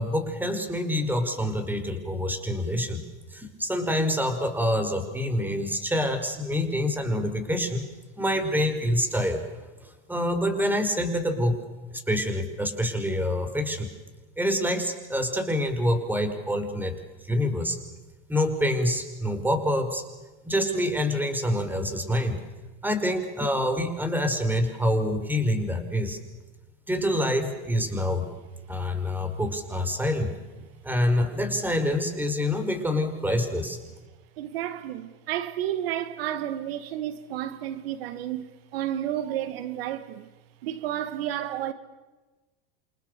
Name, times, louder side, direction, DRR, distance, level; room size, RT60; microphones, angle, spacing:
voice 1, 0.0-3.0 3.3-7.9 8.2-9.4 9.8-11.6 11.9-13.9 14.4-17.0 17.2-17.8 18.3-20.0 20.4-22.4 22.8-26.2 26.9-28.3 28.7-30.3 30.8-33.8, left 1 dB, 5° right, 5.4 m, -26 dB
voice 2, 34.4-40.3 40.6-41.7, right 11 dB, 80° right, 2.1 m, -31 dB
29.0 x 27.0 x 6.9 m
supercardioid pair, 110°, 30 cm